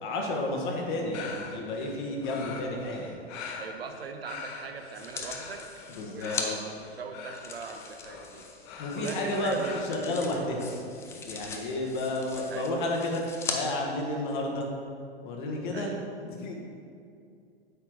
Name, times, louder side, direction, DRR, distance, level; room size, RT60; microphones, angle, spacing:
voice 1, 0.0-3.1 5.9-6.6 8.8-10.7 11.2-13.2 13.5-14.7 15.2-16.5, left 1 dB, 50° left, 1 dB, 1.4 m, -31 dB
sound 1, 1.1-9.8, left 5 dB, 35° left, 0.8 m, -43 dB
voice 2, 3.6-5.6 6.0-8.5 9.0-9.8 12.5-12.7 15.7-16.1, right 5 dB, 70° right, 6 dB, 0.8 m, -41 dB
sound 2, 4.9-6.5 7.3-13.6 14.2-14.3, left 5 dB, 10° left, 0.3 m, -40 dB
8.2 x 4.5 x 4.9 m, 2.4 s
figure-of-eight pair, 105°, 32 cm